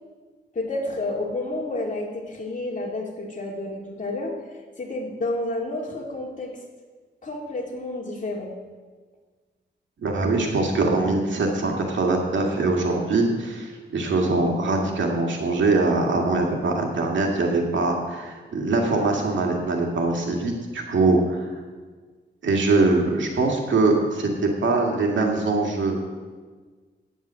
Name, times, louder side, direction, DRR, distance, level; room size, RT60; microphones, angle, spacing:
voice 1, 0.5-4.3 4.8-6.5 7.2-8.5, left 2 dB, 45° left, 0 dB, 2.5 m, -30 dB
voice 2, 10.0-21.5 22.4-26.0, right 3 dB, 85° right, 1 dB, 2.1 m, -22 dB
9.3 x 9.3 x 7.4 m, 1.4 s
wide cardioid pair, 90°, 19 cm